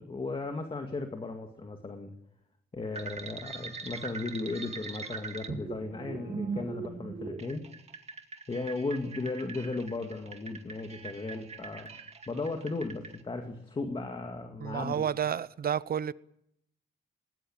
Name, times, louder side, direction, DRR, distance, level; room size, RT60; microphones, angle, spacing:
voice 1, 0.0-2.1 2.7-7.6 8.5-11.9 12.3-15.0, left 3 dB, 30° left, 2.1 m, -36 dB
sound 1, 3.0-13.2, right 4 dB, 35° right, 2.2 m, -41 dB
voice 2, 14.6-16.1, right 8 dB, 55° right, 0.8 m, -30 dB
20.0 x 19.5 x 8.7 m
cardioid pair, 120°, 19 cm